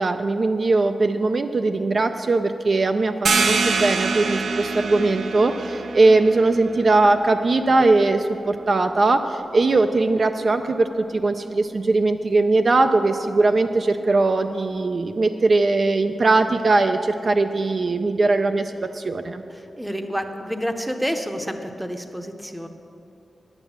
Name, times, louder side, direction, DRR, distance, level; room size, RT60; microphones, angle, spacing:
voice 1, 0.0-19.4, right 3 dB, 45° right, 7 dB, 0.4 m, -20 dB
sound 1, 3.3-8.6, right 4 dB, 80° right, 0.7 m, -26 dB
voice 2, 19.5-22.7, equal, 5° right, 6 dB, 0.7 m, -29 dB
10.0 x 8.9 x 7.3 m, 2.8 s
wide cardioid pair, 135°, 0 cm